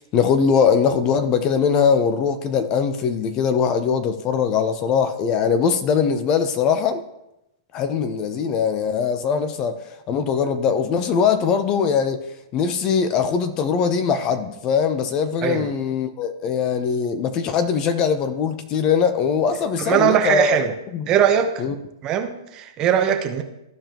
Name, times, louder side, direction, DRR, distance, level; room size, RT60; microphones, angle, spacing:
voice 1, 0.0-7.0 7.7-12.2 12.5-20.6 20.9-21.1 21.6-21.7, left 6 dB, 30° left, 0.7 m, -21 dB
voice 2, 19.8-20.7 21.1-21.5 22.0-23.4, right 9 dB, 30° right, 0.9 m, -20 dB
14.5 x 5.0 x 3.0 m
hypercardioid pair, 130°, 2 cm